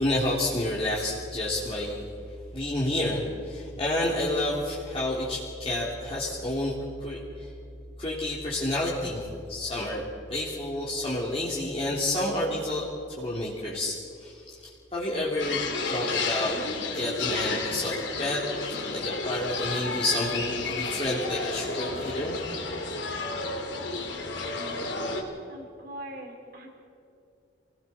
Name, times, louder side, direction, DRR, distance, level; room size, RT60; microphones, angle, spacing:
voice 1, 0.0-2.0 2.5-6.7 7.0-7.5 8.0-10.0 10.3-12.8 13.2-15.6 15.9-16.5 16.9-22.4, left 1 dB, 30° left, -6 dB, 3.2 m, -29 dB
sound 1, 15.4-25.2, left 3 dB, 80° left, 3.2 m, -32 dB
voice 2, 25.5-26.7, right 1 dB, 50° right, 1 dB, 3.9 m, -41 dB
29.5 x 20.5 x 4.4 m, 2.6 s
head